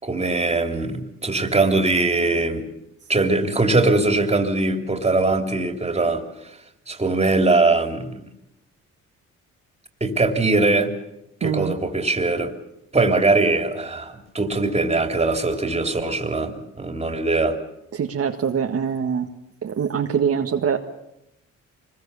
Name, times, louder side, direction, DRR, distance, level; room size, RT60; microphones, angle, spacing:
voice 1, 0.0-2.7 3.1-6.2 6.9-8.2 10.0-10.9 11.4-12.5 12.9-17.6, right 3 dB, 20° right, 5 dB, 3.2 m, -21 dB
voice 2, 11.4-11.7 17.9-19.3 19.6-20.8, right 7 dB, 50° right, 2 dB, 1.6 m, -23 dB
25.0 x 21.0 x 7.0 m, 0.84 s
cardioid pair, 90°, 30 cm